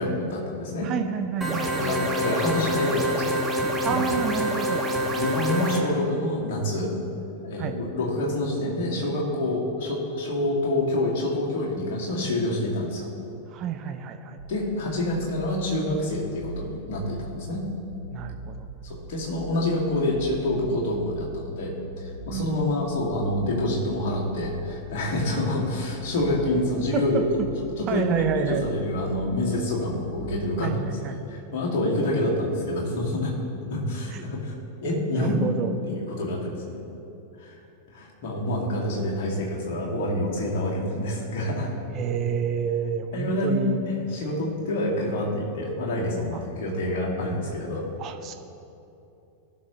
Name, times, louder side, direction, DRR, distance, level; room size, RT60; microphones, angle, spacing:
voice 1, 0.0-0.9 1.4-4.0 5.0-6.9 7.4-13.1 14.5-17.6 18.8-27.2 27.8-33.3 33.7-34.5 34.8-35.4 35.9-36.8 37.4-37.6 37.9-41.7 43.1-47.9, left 1 dB, 50° left, -3 dB, 2.2 m, -27 dB
voice 2, 0.8-2.1 3.8-4.8 7.6-7.8 13.5-14.4 18.1-18.7 22.3-22.9 26.9-27.2 27.9-28.7 30.6-31.2 34.1-34.3 35.1-35.7 41.9-43.8 46.3-46.4 48.0-48.3, right 8 dB, 35° right, 6 dB, 0.6 m, -29 dB
sound 1, 1.4-5.8, right 1 dB, 15° right, 1.3 m, -26 dB
sound 2, 14.4-30.4, right 3 dB, 85° right, 1.1 m, -40 dB
17.0 x 6.2 x 3.1 m, 2.8 s
figure-of-eight pair, 90°, 0 cm